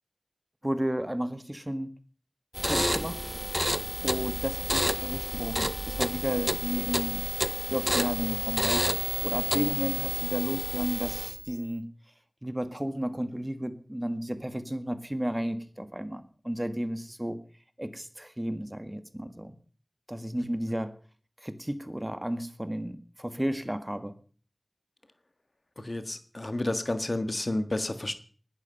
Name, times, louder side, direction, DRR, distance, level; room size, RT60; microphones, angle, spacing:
voice 1, 0.6-1.9 2.6-3.3 4.0-7.3 7.7-11.9 12.4-17.4 17.8-19.5 20.1-20.9 21.4-24.1, equal, 20° right, 10 dB, 1.7 m, -33 dB
sound 1, 2.5-11.5, equal, ahead, 1.2 m, -30 dB
voice 2, 25.8-28.2, left 1 dB, 55° left, 10 dB, 1.5 m, -31 dB
20.0 x 11.5 x 5.5 m, 0.42 s
wide cardioid pair, 45°, 0 cm